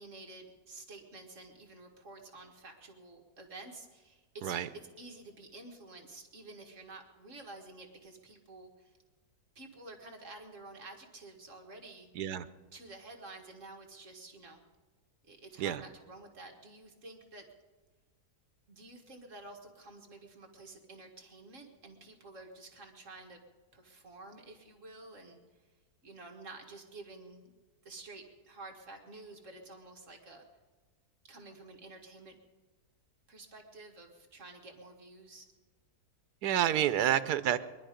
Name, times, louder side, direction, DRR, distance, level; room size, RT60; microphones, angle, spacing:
voice 1, 0.0-9.0 9.6-12.1 12.7-14.6 15.2-17.5 18.7-23.4 23.7-25.4 26.0-27.5 27.8-30.5 31.3-32.4 33.3-35.5, right 2 dB, 50° right, 2 dB, 1.9 m, -50 dB
voice 2, 36.4-37.6, right 11 dB, 85° right, 13 dB, 1.2 m, -29 dB
23.0 x 11.0 x 5.1 m, 1.3 s
omnidirectional pair, 1.7 m